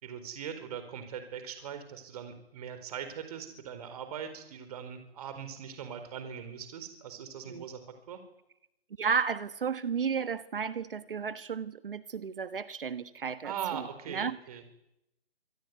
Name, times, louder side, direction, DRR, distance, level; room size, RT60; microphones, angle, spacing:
voice 1, 0.0-7.8 8.1-8.2 13.4-14.6, right 8 dB, 35° right, 9 dB, 4.5 m, -41 dB
voice 2, 9.0-14.4, right 6 dB, 55° right, 13 dB, 1.5 m, -33 dB
26.5 x 23.0 x 9.5 m, 0.82 s
figure-of-eight pair, 140°, 32 cm